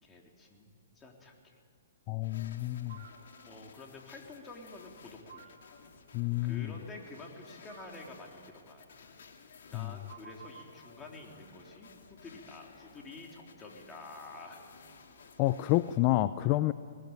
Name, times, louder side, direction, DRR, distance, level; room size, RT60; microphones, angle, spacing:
voice 1, 0.0-0.7 1.0-1.6 2.6-2.7 3.4-5.5 6.4-8.9 9.7-14.6, left 3 dB, 15° left, 0 dB, 3.6 m, -49 dB
voice 2, 2.1-3.0 6.1-6.7 9.7-9.9 15.4-16.7, left 17 dB, 40° left, 14 dB, 0.6 m, -29 dB
sound 1, 2.2-16.0, left 5 dB, 65° left, 3.0 m, -56 dB
sound 2, 2.9-3.1 5.3-5.4 7.7-7.8 10.1-10.6, right 7 dB, 75° right, 5.1 m, -49 dB
20.5 x 20.0 x 9.0 m, 2.1 s
hypercardioid pair, 135°, 0 cm